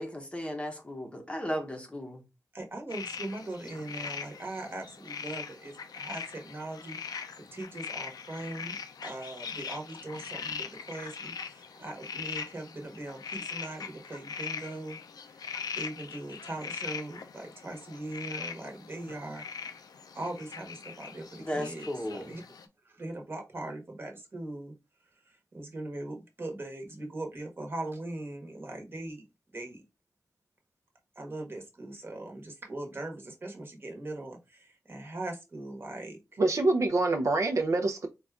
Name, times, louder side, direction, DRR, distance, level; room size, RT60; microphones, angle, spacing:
voice 1, 0.0-2.2 21.4-22.3, equal, 15° left, 0.7 m, -35 dB
voice 2, 2.5-8.8 9.0-15.0 15.3-15.4 15.7-19.8 20.1-21.8 22.1-22.4 22.8-24.7 25.3-29.2 29.5-29.8 31.2-36.4, right 2 dB, 35° right, 1.1 m, -40 dB
sound 1, 2.9-22.6, left 6 dB, 85° left, 0.4 m, -41 dB
voice 3, 36.4-38.1, right 2 dB, 55° right, 0.5 m, -25 dB
3.9 x 2.3 x 3.5 m
wide cardioid pair, 135°, 6 cm